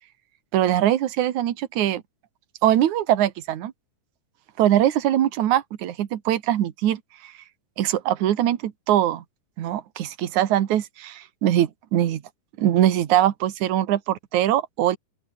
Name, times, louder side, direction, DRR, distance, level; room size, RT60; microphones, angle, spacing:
voice 1, 0.5-2.0 2.6-3.7 4.6-7.3 7.8-9.2 9.6-12.2 12.6-15.0, right 12 dB, 65° right, 2.8 m, -22 dB
open air
omnidirectional pair, 3.9 m